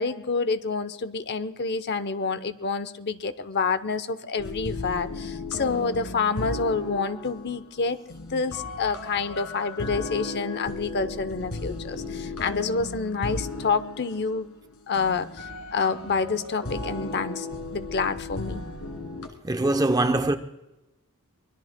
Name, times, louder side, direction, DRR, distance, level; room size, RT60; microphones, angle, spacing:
voice 1, 0.0-14.5 14.9-15.5 15.7-17.5 17.7-18.6, left 4 dB, 50° left, 0.7 m, -28 dB
sound 1, 4.4-19.3, left 2 dB, 70° left, 2.2 m, -36 dB
voice 2, 19.4-20.4, right 2 dB, 15° right, 0.6 m, -22 dB
24.0 x 21.5 x 2.2 m
head